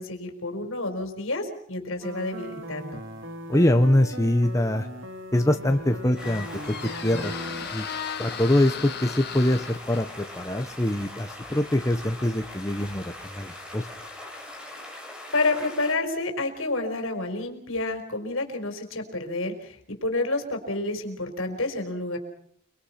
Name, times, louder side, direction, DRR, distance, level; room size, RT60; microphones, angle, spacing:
voice 1, 0.0-3.0 15.3-19.8 20.0-22.2, left 2 dB, 70° left, 5 dB, 4.6 m, -29 dB
sound 1, 2.0-7.7, right 1 dB, 60° right, 2.6 m, -38 dB
voice 2, 3.5-4.9 5.3-6.7 7.0-7.3 7.7-7.9 8.2-13.9, left 1 dB, 15° left, 5 dB, 1.0 m, -24 dB
Squeak, 5.5-14.2, left 8 dB, 50° left, 1.6 m, -39 dB
sound 2, 6.2-15.9, left 1 dB, 5° right, 4.7 m, -41 dB
30.0 x 21.0 x 5.9 m, 0.68 s
head